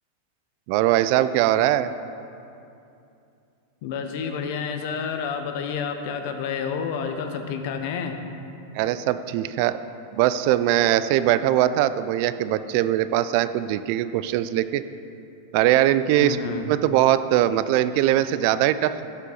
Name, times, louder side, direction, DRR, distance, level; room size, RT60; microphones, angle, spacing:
voice 1, 0.7-1.9 8.7-9.8 10.1-14.8 15.5-16.4 16.7-19.1, right 13 dB, 50° right, 13 dB, 0.3 m, -21 dB
voice 2, 3.8-8.2 16.2-16.7, left 6 dB, 55° left, 6 dB, 0.8 m, -29 dB
12.5 x 5.6 x 3.9 m, 2.6 s
supercardioid pair, 145°, 0 cm